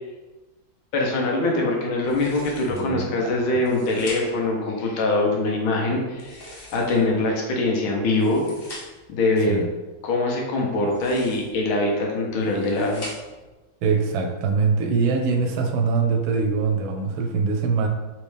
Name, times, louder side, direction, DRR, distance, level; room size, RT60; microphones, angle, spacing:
voice 1, 0.9-8.4 9.1-9.6 10.0-13.1, left 2 dB, 85° left, -1 dB, 1.7 m, -23 dB
sound 1, 2.0-2.9 3.5-4.5 6.1-7.2 8.0-9.1 10.8-11.6 12.3-13.5, left 1 dB, 55° left, 0.6 m, -42 dB
voice 2, 2.7-3.4 9.5-9.6 13.8-17.9, right 4 dB, 85° right, 4 dB, 1.4 m, -23 dB
4.3 x 3.1 x 3.3 m, 1.2 s
omnidirectional pair, 2.2 m